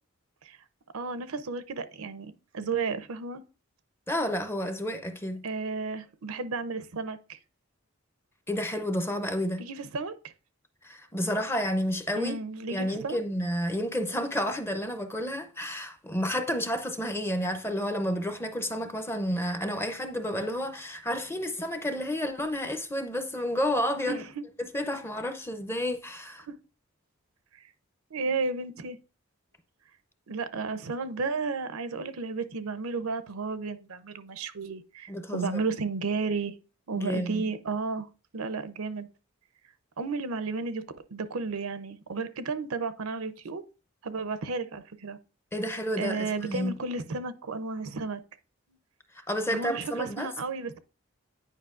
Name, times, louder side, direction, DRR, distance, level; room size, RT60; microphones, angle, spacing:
voice 1, 0.9-3.4 5.4-7.4 9.6-10.2 12.2-13.2 24.1-24.4 26.5-26.6 27.6-27.7 28.1-29.0 30.3-36.5 36.9-38.1 38.3-39.1 40.0-40.8 41.1-43.6 44.0-45.2 46.0-48.2 49.5-50.8, right 4 dB, 85° right, 0.6 m, -33 dB
voice 2, 4.1-5.4 8.5-9.6 10.8-12.3 12.7-24.2 24.6-26.5 35.1-35.5 37.0-37.5 45.5-46.7 49.3-50.3, equal, 10° left, 0.5 m, -30 dB
9.3 x 5.0 x 2.4 m
head